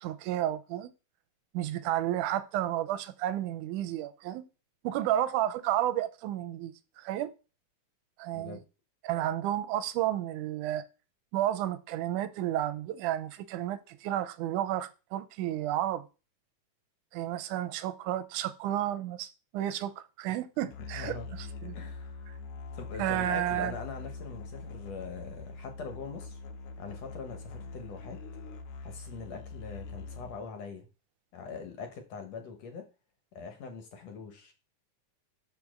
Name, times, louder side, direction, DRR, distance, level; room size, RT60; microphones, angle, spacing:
voice 1, 0.0-0.9 1.5-4.4 4.8-7.3 8.2-8.6 9.0-10.8 11.3-16.1 17.1-21.7 23.0-23.7, right 12 dB, 90° right, 2.1 m, -32 dB
Musical instrument, 20.7-30.5, left 3 dB, 80° left, 2.2 m, -43 dB
voice 2, 20.9-21.3 21.8-22.4 22.7-26.4 26.8-28.2 28.8-30.9 31.3-32.9 33.3-34.5, left 5 dB, 65° left, 2.1 m, -42 dB
5.2 x 4.7 x 6.3 m
omnidirectional pair, 3.6 m